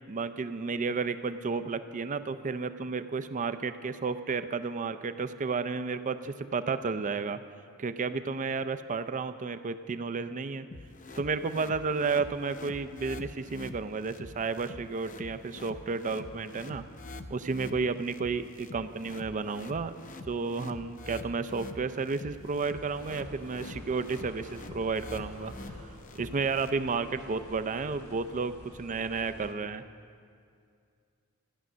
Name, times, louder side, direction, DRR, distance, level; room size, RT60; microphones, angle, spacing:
voice 1, 0.1-7.4 7.8-10.7 11.2-16.8 17.3-25.5 26.1-29.8, right 4 dB, 35° right, 11 dB, 0.5 m, -32 dB
sound 1, 10.7-26.7, left 2 dB, 35° left, 0.6 m, -46 dB
sound 2, 22.4-29.5, left 1 dB, 70° left, 1.6 m, -49 dB
13.5 x 10.5 x 6.2 m, 2.3 s
head